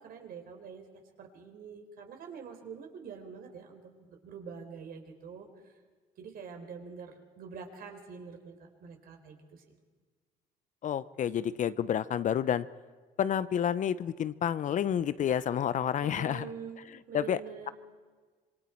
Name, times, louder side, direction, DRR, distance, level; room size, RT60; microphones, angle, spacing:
voice 1, 0.0-5.7 6.2-9.8 16.0-16.8 17.1-17.7, right 6 dB, 60° right, 4 dB, 3.9 m, -45 dB
voice 2, 10.8-12.7 13.2-16.5 17.1-17.4, left 9 dB, 50° left, 16 dB, 0.7 m, -29 dB
26.5 x 22.0 x 4.5 m, 1.5 s
cardioid pair, 110°, 17 cm